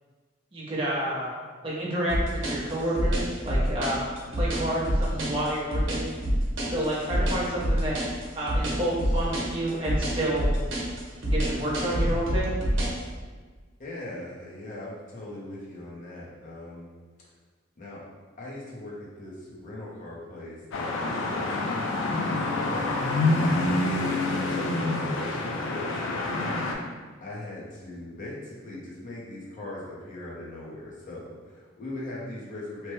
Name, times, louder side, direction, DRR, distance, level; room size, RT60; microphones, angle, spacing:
voice 1, 0.5-4.0 4.3-6.1 6.7-8.0 8.3-10.5 11.2-12.5, right 1 dB, 25° right, -6 dB, 0.6 m, -29 dB
sound 1, 2.1-13.0, equal, 70° right, 0.8 m, -26 dB
voice 2, 13.8-16.9 17.8-18.0 18.4-21.6 22.4-26.4 27.2-32.9, left 1 dB, 40° left, -5 dB, 0.7 m, -40 dB
sound 2, 20.7-26.7, left 2 dB, 75° left, 0.4 m, -27 dB
3.0 x 2.1 x 3.1 m, 1.4 s
head